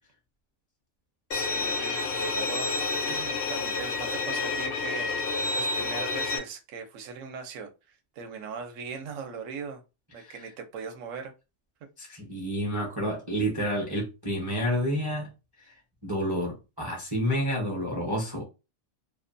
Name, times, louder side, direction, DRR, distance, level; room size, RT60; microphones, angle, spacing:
Bowed string instrument, 1.3-6.4, left 3 dB, 65° left, 0.6 m, -29 dB
voice 1, 1.3-9.8 10.1-11.3, right 6 dB, 75° right, 0.9 m, -40 dB
voice 2, 12.0-15.3 15.6-15.7 16.0-18.4, equal, 25° right, 0.5 m, -29 dB
2.5 x 2.1 x 2.5 m
omnidirectional pair, 1.4 m